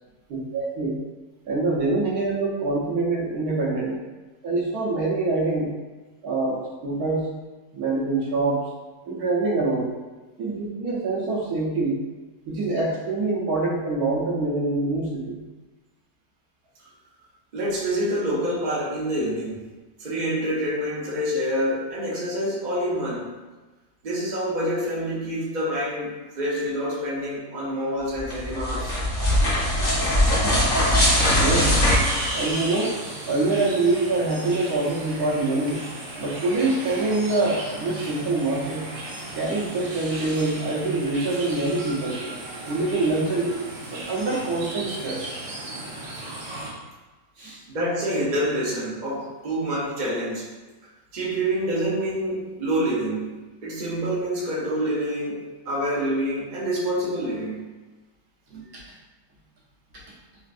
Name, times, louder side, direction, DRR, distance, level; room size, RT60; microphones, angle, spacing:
voice 1, 0.3-1.0 1.5-4.0 4.4-5.7 6.2-7.3 7.7-8.6 9.1-9.9 10.4-12.0 12.5-15.4 31.4-31.8 32.3-33.0 33.3-35.8 36.2-38.8 39.3-42.2 42.6-43.5 43.9-45.3 47.4-47.6 58.7-58.8 59.9-60.0, right 2 dB, 65° right, -5 dB, 1.2 m, -25 dB
voice 2, 17.5-19.7 20.0-23.3 24.0-28.9 47.7-50.4 51.1-53.4 53.6-57.6 58.5-58.6, equal, 50° right, -6 dB, 0.5 m, -27 dB
sound 1, 28.2-33.1, left 1 dB, 40° left, 1.0 m, -21 dB
sound 2, 30.9-46.7, right 2 dB, 90° right, 1.4 m, -36 dB
4.3 x 2.5 x 2.4 m, 1.2 s
omnidirectional pair, 1.9 m